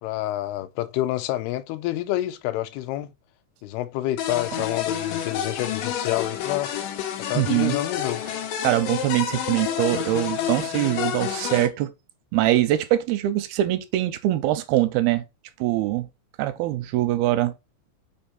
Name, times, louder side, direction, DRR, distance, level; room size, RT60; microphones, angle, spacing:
voice 1, 0.0-3.1 3.6-6.7 7.3-8.3, left 15 dB, 90° left, 2.6 m, -28 dB
sound 1, 4.2-11.7, left 10 dB, 70° left, 2.5 m, -29 dB
voice 2, 7.3-7.8 8.6-11.9 12.3-15.2 15.6-16.1 16.4-17.5, right 14 dB, 85° right, 2.5 m, -23 dB
5.9 x 4.4 x 4.1 m
omnidirectional pair, 4.5 m